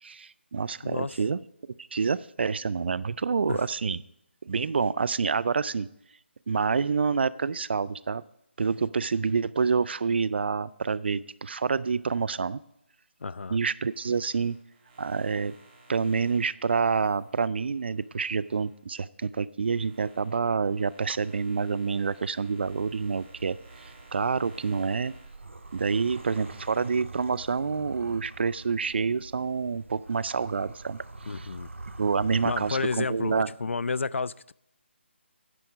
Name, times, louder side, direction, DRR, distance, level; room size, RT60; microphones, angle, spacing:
voice 1, 0.0-1.4 1.9-4.0 4.4-5.9 6.5-8.2 8.6-12.6 13.5-14.6 15.0-15.5 15.9-25.1 25.7-31.0 31.4-31.5 32.0-33.5, right 5 dB, 60° right, 20 dB, 0.4 m, -27 dB
voice 2, 0.8-1.2 3.5-3.7 13.2-13.6 31.3-31.7 32.4-34.5, left 4 dB, 80° left, 21 dB, 0.3 m, -31 dB
sound 1, 13.7-18.8 19.2-27.1, right 3 dB, 25° right, 4.5 m, -56 dB
sound 2, 22.6-33.4, right 2 dB, 90° right, 1.0 m, -45 dB
9.8 x 7.8 x 5.1 m, 0.79 s
figure-of-eight pair, 155°, 7 cm